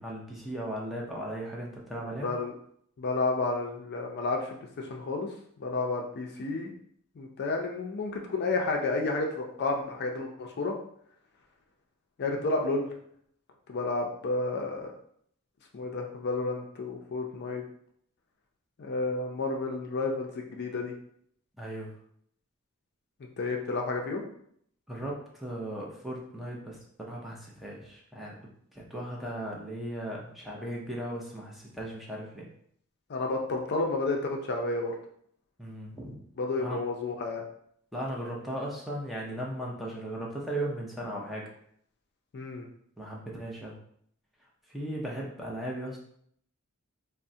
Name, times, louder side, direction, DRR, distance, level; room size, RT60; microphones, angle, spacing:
voice 1, 0.0-2.3 21.6-22.0 24.9-26.8 27.1-28.4 28.7-32.5 35.6-36.2 36.6-36.8 37.9-41.5 43.0-43.8 44.7-46.0, right 1 dB, ahead, -4 dB, 0.5 m, -37 dB
voice 2, 2.2-2.5 3.0-5.3 5.6-6.7 7.2-10.7 12.2-12.9 13.7-14.9 15.7-17.6 18.8-20.9 23.4-24.3 33.1-34.9 36.4-37.4 42.3-42.7, left 3 dB, 50° left, 1 dB, 0.4 m, -31 dB
3.5 x 2.1 x 2.6 m, 0.66 s
head